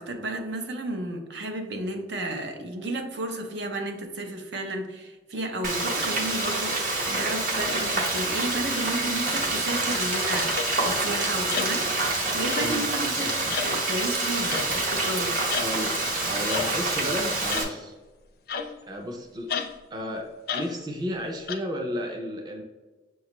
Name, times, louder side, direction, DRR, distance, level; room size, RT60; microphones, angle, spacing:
voice 1, 0.0-13.3 13.6-15.4, right 1 dB, 70° right, 4 dB, 0.6 m, -32 dB
Frying (food), 5.6-17.6, right 2 dB, 50° right, 0.9 m, -27 dB
sound 1, 10.5-10.7 11.5-11.8 12.5-12.8 13.5-13.7 14.5-14.8 15.5-15.7 16.5-16.7 17.5-17.8 18.5-18.9 19.5-19.7 20.5-20.7 21.5-21.6, left 6 dB, 55° left, 0.4 m, -31 dB
voice 2, 12.6-13.6 15.6-16.0 16.2-17.9 18.9-19.5 19.9-22.6, equal, 20° right, 1 dB, 0.4 m, -33 dB
6.4 x 2.3 x 2.9 m, 1.2 s
head